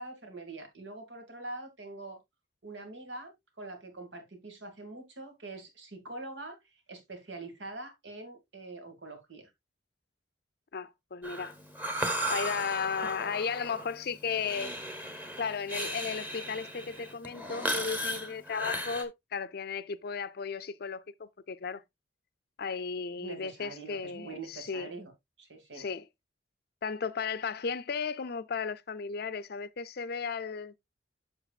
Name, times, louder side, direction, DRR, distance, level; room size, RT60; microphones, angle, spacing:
voice 1, 0.0-2.2 2.6-6.6 6.9-9.5 13.2-13.3 14.5-14.8 23.2-25.1 25.4-25.8, right 2 dB, 80° right, 2.1 m, -44 dB
voice 2, 10.7-11.5 12.3-14.7 15.4-21.8 22.6-24.9 25.7-26.0 26.8-30.7, left 5 dB, 60° left, 0.5 m, -35 dB
Breathing, 11.2-19.0, equal, 10° right, 1.1 m, -36 dB
8.1 x 6.6 x 2.4 m
head